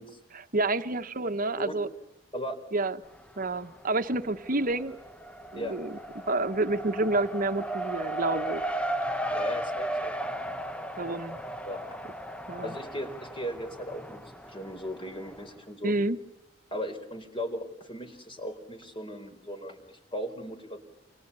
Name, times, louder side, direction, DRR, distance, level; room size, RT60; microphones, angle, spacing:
voice 1, 0.3-1.9 2.7-3.0 3.4-5.0 5.5-6.0 6.3-8.6 10.9-11.4 12.5-12.8 15.8-16.2, right 2 dB, 45° right, 9 dB, 1.4 m, -29 dB
Race car auto racing, 3.0-3.8 4.1-15.5, right 1 dB, 5° left, 1.1 m, -36 dB
voice 2, 9.3-10.1 11.7-11.9 12.6-14.2 14.5-15.9 16.7-20.8, equal, 25° left, 6 dB, 4.4 m, -37 dB
29.5 x 27.5 x 7.1 m, 0.89 s
head